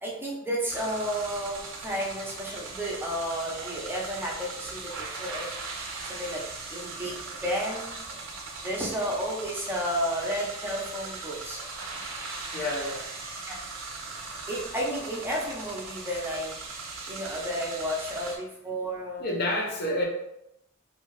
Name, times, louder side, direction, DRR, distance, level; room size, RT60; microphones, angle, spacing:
voice 1, 0.0-5.5 6.0-6.4 6.7-8.0 8.6-11.6 13.5-13.6 14.5-16.5 17.1-19.3, equal, 10° right, -4 dB, 0.6 m, -32 dB
sound 1, 0.7-18.4, right 3 dB, 65° right, 0.5 m, -39 dB
voice 2, 12.5-13.1 19.2-20.0, left 1 dB, 50° left, -1 dB, 0.6 m, -29 dB
2.6 x 2.4 x 3.0 m, 0.81 s
head